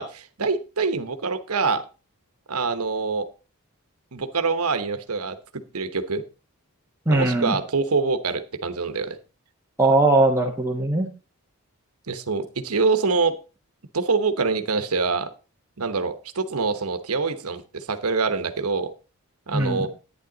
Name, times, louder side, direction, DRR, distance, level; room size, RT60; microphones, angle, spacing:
voice 1, 0.0-1.8 2.5-3.3 4.1-5.4 5.7-6.2 7.1-9.2 12.1-13.4 13.9-15.3 15.8-18.9 19.5-19.9, right 4 dB, 80° right, 10 dB, 1.1 m, -25 dB
voice 2, 7.1-7.6 9.8-11.1 19.5-19.9, right 2 dB, 10° right, -1 dB, 1.2 m, -20 dB
10.5 x 9.7 x 3.9 m, 0.32 s
head